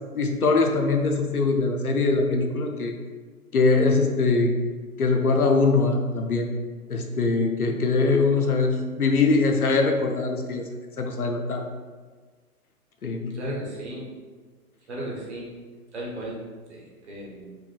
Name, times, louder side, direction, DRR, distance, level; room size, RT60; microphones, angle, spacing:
voice 1, 0.1-2.9 3.5-4.5 5.0-6.5 6.9-10.7 11.0-11.7 13.0-13.4, left 3 dB, 75° left, 4 dB, 0.7 m, -22 dB
voice 2, 13.3-14.1 14.9-15.5 15.9-16.4 16.7-17.5, right 1 dB, 50° right, -4 dB, 1.2 m, -35 dB
4.7 x 3.5 x 2.2 m, 1.4 s
figure-of-eight pair, 125°, 45 cm